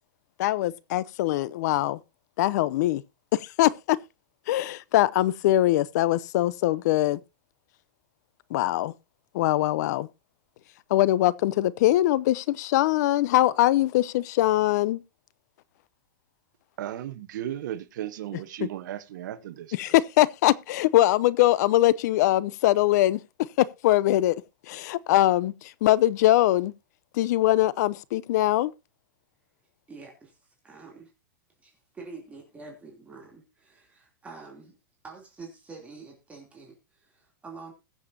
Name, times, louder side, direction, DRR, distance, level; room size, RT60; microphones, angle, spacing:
voice 1, 0.4-2.0 2.4-3.0 3.3-4.0 4.5-7.2 8.5-8.9 9.3-10.1 10.9-15.0 19.7-23.2 23.6-24.4 24.7-26.7 27.1-28.7, left 15 dB, 60° left, 0.7 m, -22 dB
voice 2, 16.8-19.8, right 12 dB, 70° right, 1.2 m, -35 dB
voice 3, 29.9-30.4 30.6-31.1 31.6-34.7 35.0-37.7, right 4 dB, 10° right, 3.1 m, -46 dB
21.0 x 7.2 x 2.8 m
supercardioid pair, 145°, 11 cm